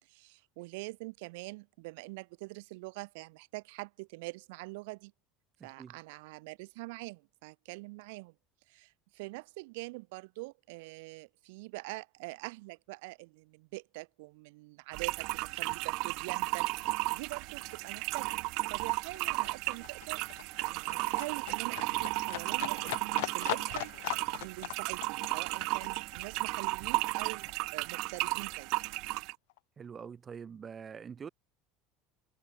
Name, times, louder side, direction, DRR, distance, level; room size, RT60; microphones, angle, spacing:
voice 1, 0.0-5.1 5.6-8.4 8.7-18.5 18.7-27.5 27.7-29.2, right 25 dB, 80° right, 1.6 m, -45 dB
sound 1, 14.9-29.3, right 26 dB, 65° right, 0.7 m, -34 dB
Livestock farm animals working animals, 16.5-16.6 16.8-27.8 28.2-29.2 29.5-29.6, left 24 dB, 85° left, 2.1 m, -41 dB
voice 2, 29.8-31.3, right 7 dB, 25° right, 1.8 m, -44 dB
cardioid pair, 140°, 0 cm